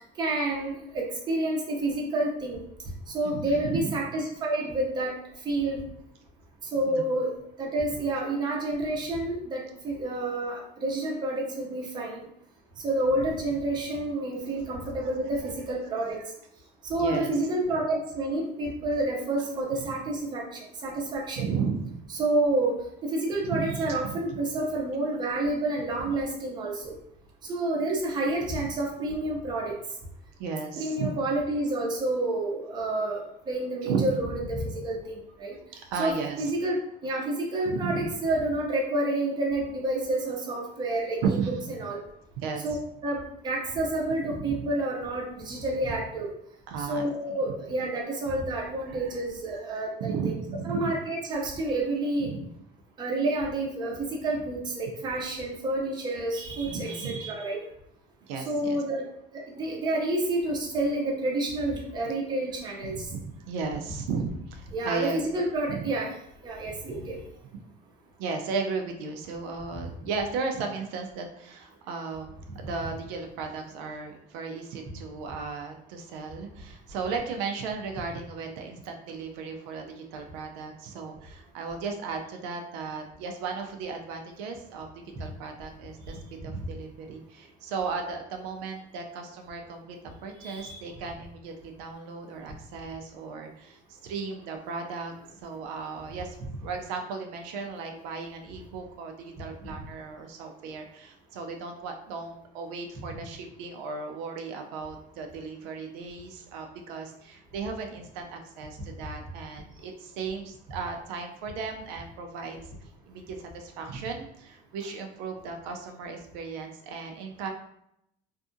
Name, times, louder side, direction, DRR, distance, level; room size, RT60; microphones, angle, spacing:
voice 1, 0.2-2.6 3.1-5.1 5.4-5.8 6.7-7.3 7.6-12.2 12.8-16.2 16.9-21.5 22.1-26.9 27.5-29.7 30.8-35.6 36.0-36.8 37.0-41.4 41.8-42.0 42.6-42.8 43.0-46.3 46.8-50.4 50.6-52.3 53.0-57.6 58.4-59.1 59.6-63.1 64.7-66.1 66.4-67.2 72.5-72.6 86.1-86.2 90.4-90.8, right 2 dB, 20° right, -2 dB, 0.6 m, -29 dB
voice 2, 3.2-4.0 6.9-7.0 15.4-15.5 16.0-16.1 16.9-17.3 19.8-19.9 21.4-22.0 23.4-24.2 30.4-31.1 33.8-34.2 35.7-36.5 37.6-38.1 41.2-41.6 42.4-42.6 44.3-44.4 46.7-47.4 48.9-49.2 49.5-51.0 52.2-52.5 56.7-57.2 58.3-58.8 62.8-65.2 65.7-65.9 68.2-84.9 85.2-90.0 90.2-95.1 95.4-96.4 96.6-112.6 113.1-117.5, right 5 dB, 85° right, 4 dB, 0.5 m, -35 dB
2.6 x 2.4 x 2.5 m, 0.76 s
cardioid pair, 150°, 20 cm